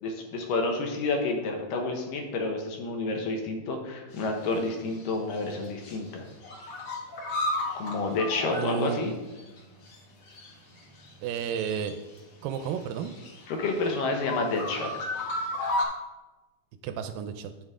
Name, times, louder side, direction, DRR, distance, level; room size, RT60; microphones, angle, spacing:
voice 1, 0.0-6.2 7.8-9.1 13.5-14.9, left 3 dB, 70° left, 3 dB, 2.5 m, -29 dB
sound 1, 4.1-4.6 4.9-6.0 6.3-9.6 9.8-10.0 10.3-12.2 12.5-15.8, left 1 dB, 55° left, 1.7 m, -34 dB
voice 2, 8.5-9.0 11.2-12.0 12.4-13.1 16.8-17.5, right 8 dB, 80° right, 8 dB, 2.1 m, -32 dB
9.2 x 7.3 x 3.6 m, 1.1 s
omnidirectional pair, 4.2 m